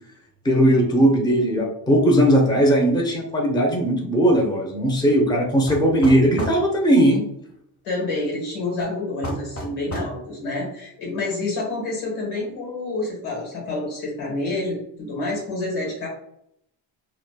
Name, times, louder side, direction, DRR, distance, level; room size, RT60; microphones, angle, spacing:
voice 1, 0.4-7.2, equal, 10° left, -1 dB, 0.7 m, -18 dB
sound 1, 5.7-6.6 9.2-10.2, equal, 30° left, 1.0 m, -31 dB
voice 2, 7.8-16.1, left 2 dB, 85° left, -2 dB, 1.4 m, -28 dB
3.1 x 2.4 x 2.2 m, 0.75 s
supercardioid pair, 75°, 47 cm